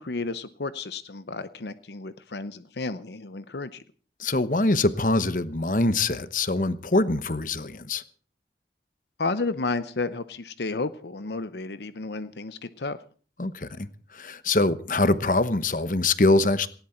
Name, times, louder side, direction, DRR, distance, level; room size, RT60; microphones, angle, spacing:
voice 1, 0.0-3.8 9.2-13.0, left 3 dB, 70° left, 0.8 m, -32 dB
voice 2, 4.2-8.0 13.4-13.9 14.1-16.7, left 2 dB, 45° left, 1.0 m, -23 dB
19.0 x 17.0 x 4.4 m
head